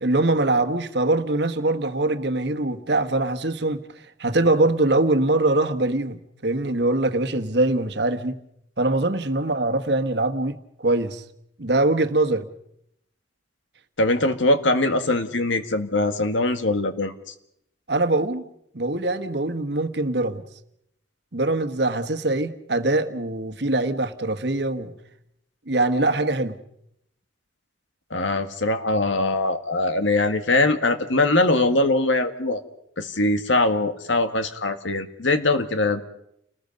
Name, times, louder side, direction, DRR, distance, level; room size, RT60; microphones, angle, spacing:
voice 1, 0.0-3.8 4.2-6.2 6.4-8.4 8.8-11.2 11.6-12.5 17.9-18.4 18.7-20.4 21.3-24.9 25.7-26.6, right 2 dB, 60° right, 1.4 m, -23 dB
voice 2, 14.0-17.1 28.1-32.6 33.0-36.0, left 2 dB, 80° left, 1.8 m, -22 dB
29.5 x 20.0 x 5.3 m
head